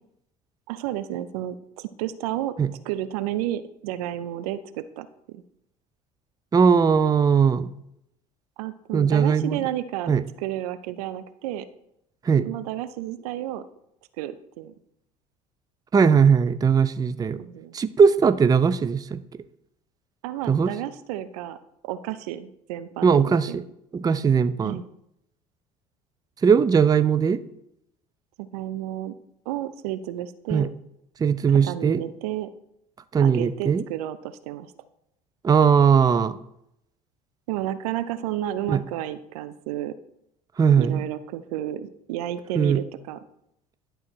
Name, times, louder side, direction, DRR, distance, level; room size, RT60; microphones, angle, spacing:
voice 1, 0.7-2.5 2.8-5.4 8.6-10.1 10.4-11.7 12.4-13.6 14.2-14.7 17.4-17.8 20.2-21.6 21.8-23.2 23.5-23.6 24.6-24.9 28.4-29.1 29.5-30.7 31.5-32.5 33.2-34.7 37.5-39.9 40.8-43.2, right 13 dB, 75° right, 13 dB, 0.5 m, -31 dB
voice 2, 6.5-7.7 8.9-9.6 10.1-10.2 12.2-12.5 15.9-17.4 17.7-19.2 20.5-20.7 23.0-23.6 23.9-24.8 26.4-27.4 30.5-30.7 31.2-32.0 33.1-33.8 35.4-36.4 38.7-38.8 40.6-41.0 42.5-42.8, right 6 dB, 20° right, 13 dB, 0.4 m, -19 dB
11.0 x 3.8 x 4.5 m, 0.78 s
hypercardioid pair, 70°, 20 cm